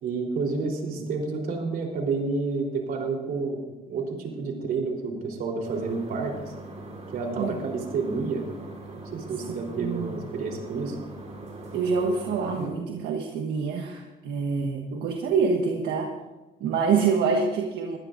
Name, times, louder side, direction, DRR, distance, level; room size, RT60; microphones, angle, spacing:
voice 1, 0.0-3.6 3.9-6.5 7.1-8.5 9.1-11.0 12.0-12.1 12.6-12.7, right 4 dB, 60° right, 1 dB, 3.8 m, -29 dB
sound 1, 5.6-12.7, right 2 dB, 40° right, 3.7 m, -41 dB
voice 2, 9.6-10.2 11.7-16.1 16.6-18.0, right 5 dB, 80° right, 2 dB, 1.5 m, -26 dB
22.0 x 15.5 x 2.6 m, 1.1 s
cardioid pair, 110°, 17 cm